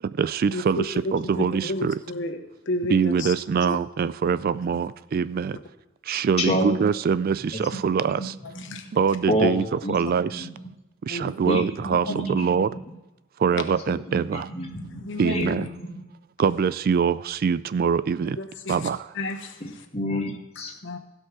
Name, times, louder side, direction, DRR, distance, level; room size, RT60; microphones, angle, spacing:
voice 1, 0.0-2.0 2.9-5.6 6.0-8.4 8.9-10.5 11.0-12.7 13.4-14.5 15.2-15.7 16.4-18.4 18.7-19.1, right 6 dB, 45° right, 16 dB, 0.3 m, -24 dB
voice 2, 0.5-0.8 1.4-2.4 2.7-3.3 3.6-3.8 8.7-8.8 11.1-11.2 15.0-15.4 18.4-18.8 19.2-19.5 20.8-21.0, left 1 dB, 60° left, 6 dB, 1.0 m, -31 dB
voice 3, 6.4-6.8 8.2-8.3 8.7-8.8 9.3-9.5 9.8-10.0 10.3-10.4 11.5-11.6 12.0-12.8 13.9-14.2 14.5-15.0 15.3-16.0 19.6-20.7, equal, 30° left, 1 dB, 2.0 m, -28 dB
16.0 x 5.5 x 5.9 m, 1.0 s
head